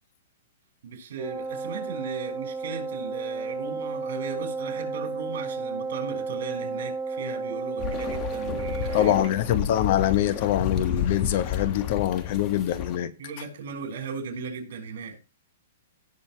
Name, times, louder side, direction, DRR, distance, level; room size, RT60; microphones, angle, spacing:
voice 1, 0.8-9.3 13.2-15.2, right 5 dB, 65° right, 5.3 m, -37 dB
Wind instrument woodwind instrument, 1.2-9.4, right 4 dB, 5° left, 1.6 m, -33 dB
sound 1, 7.8-13.0, left 8 dB, 25° left, 1.3 m, -31 dB
voice 2, 8.9-13.1, left 12 dB, 45° left, 0.9 m, -24 dB
17.5 x 7.0 x 3.2 m
hypercardioid pair, 165°, 0 cm